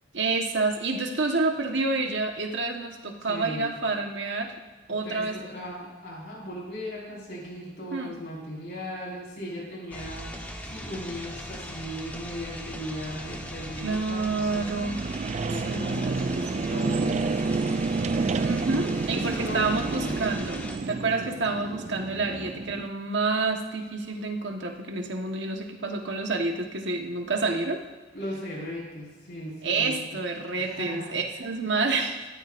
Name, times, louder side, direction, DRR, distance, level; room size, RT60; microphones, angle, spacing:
voice 1, 0.1-4.5 4.9-5.5 7.9-8.2 13.8-15.0 15.6-16.5 18.3-20.6 20.9-27.8 29.6-32.2, right 3 dB, 75° right, 3 dB, 1.3 m, -28 dB
voice 2, 3.3-3.7 5.0-14.6 15.5-17.8 19.1-20.3 28.1-30.2 30.6-31.5, equal, 65° left, -4 dB, 5.0 m, -38 dB
sound 1, 9.9-20.8, equal, 10° left, 1.2 m, -39 dB
sound 2, 13.1-22.9, right 4 dB, 35° right, 0.3 m, -30 dB
18.0 x 13.5 x 2.6 m, 1.3 s
head